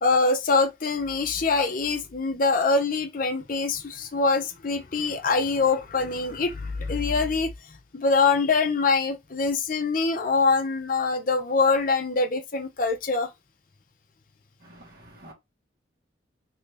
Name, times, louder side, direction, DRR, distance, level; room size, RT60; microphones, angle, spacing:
voice 1, 0.0-13.3, left 4 dB, 45° left, 0.6 m, -24 dB
voice 2, 14.6-15.3, right 1 dB, 50° right, 1.4 m, -48 dB
3.0 x 2.6 x 3.3 m
head